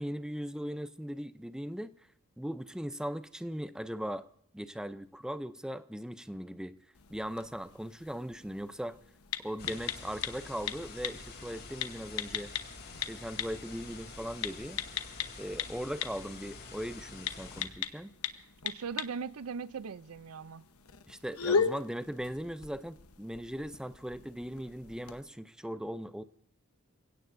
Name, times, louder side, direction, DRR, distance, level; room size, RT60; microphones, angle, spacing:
voice 1, 0.0-1.9 2.4-4.3 4.5-6.8 7.1-9.0 9.4-12.5 13.0-14.8 15.4-18.1 21.1-26.2, equal, 5° right, 0.5 m, -39 dB
sound 1, 6.9-25.2, left 6 dB, 90° left, 1.1 m, -39 dB
sound 2, 9.6-17.6, left 3 dB, 50° left, 3.1 m, -47 dB
voice 2, 18.6-20.6, right 6 dB, 80° right, 0.5 m, -39 dB
27.0 x 17.0 x 2.6 m
head